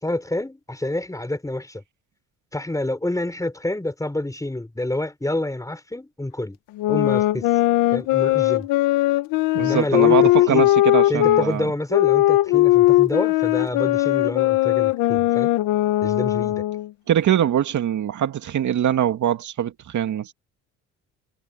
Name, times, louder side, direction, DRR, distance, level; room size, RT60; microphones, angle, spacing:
voice 1, 0.0-1.8 2.5-6.6 6.9-7.5 7.9-8.7 9.6-10.7 11.1-15.5 16.0-16.6, left 1 dB, 10° left, 5.8 m, -28 dB
sound 1, 6.8-11.5 11.9-16.9, left 16 dB, 85° left, 1.5 m, -19 dB
voice 2, 9.5-11.7 17.1-20.3, right 10 dB, 60° right, 2.5 m, -22 dB
supercardioid pair, 80°, 33 cm